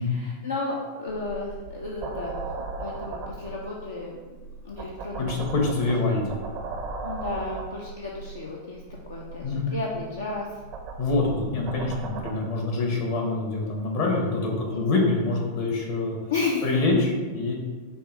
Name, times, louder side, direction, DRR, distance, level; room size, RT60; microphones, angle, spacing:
voice 1, 0.0-2.3 2.8-4.4 4.6-6.2 7.0-8.8 9.1-10.5 14.7-15.1 16.3-16.7, left 3 dB, 70° left, -2 dB, 0.5 m, -33 dB
sound 1, 1.1-12.3, right 3 dB, 40° right, 0.5 m, -38 dB
voice 2, 5.2-6.3 9.4-9.7 11.0-16.2 16.6-17.5, left 3 dB, 50° left, -1 dB, 1.1 m, -25 dB
5.4 x 2.4 x 4.0 m, 1.4 s
figure-of-eight pair, 90°, 0 cm